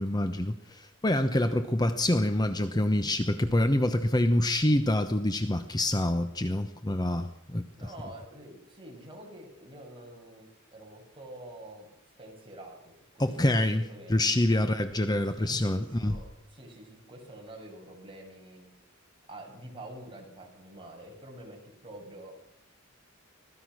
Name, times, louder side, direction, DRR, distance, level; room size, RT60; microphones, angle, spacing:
voice 1, 0.0-7.6 13.2-16.2, left 1 dB, 20° left, 9 dB, 1.0 m, -26 dB
voice 2, 7.7-11.9 12.2-14.1 14.5-14.7 15.2-18.7 19.3-22.4, right 1 dB, 25° right, 1 dB, 6.4 m, -47 dB
25.0 x 18.0 x 6.3 m, 0.85 s
head